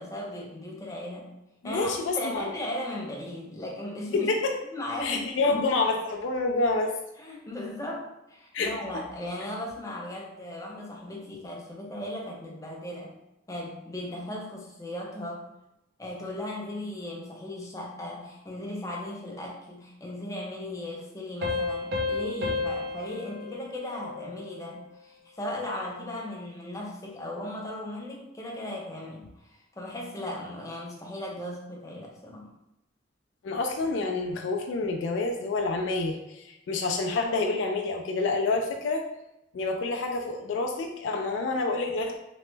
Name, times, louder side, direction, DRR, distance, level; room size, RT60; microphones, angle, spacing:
voice 1, 0.0-1.3 1.6-4.3 4.7-5.7 6.8-6.9 7.2-13.2 13.5-15.4 16.0-32.5, left 1 dB, 15° left, -2 dB, 0.6 m, -37 dB
voice 2, 1.6-2.5 4.1-4.5 5.0-6.9 8.5-8.7 33.4-39.0 39.5-42.2, left 3 dB, 75° left, 3 dB, 0.4 m, -28 dB
sound 1, 21.4-24.7, left 3 dB, 55° right, 0.5 m, -32 dB
2.9 x 2.1 x 3.2 m, 0.90 s
head